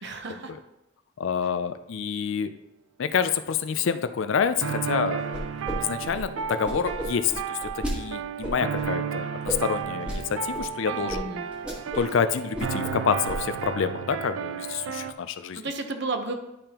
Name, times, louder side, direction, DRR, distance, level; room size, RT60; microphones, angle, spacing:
voice 1, 0.0-0.5 10.9-11.4 15.5-16.3, right 3 dB, 55° right, 5 dB, 0.8 m, -32 dB
voice 2, 1.2-2.5 3.0-5.5 5.8-11.3 11.9-15.6, left 6 dB, 65° left, 11 dB, 0.4 m, -28 dB
sound 1, 4.6-15.1, right 7 dB, 75° right, 0.5 m, -33 dB
sound 2, 5.3-5.8 6.0-7.9 8.4-8.8 9.5-10.2 10.5-10.6 11.1-11.2 11.5-12.1 12.4-12.9 13.3-13.6, equal, 5° right, 1.4 m, -33 dB
10.5 x 5.2 x 2.9 m, 0.92 s
head